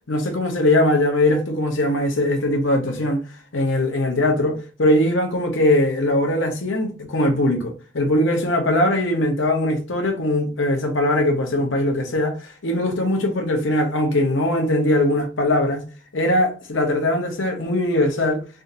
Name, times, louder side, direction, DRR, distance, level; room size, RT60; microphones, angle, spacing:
voice 1, 0.1-3.2 3.5-15.8 16.1-18.4, left 1 dB, 70° left, 0.9 m, -21 dB
3.5 x 2.7 x 2.5 m
head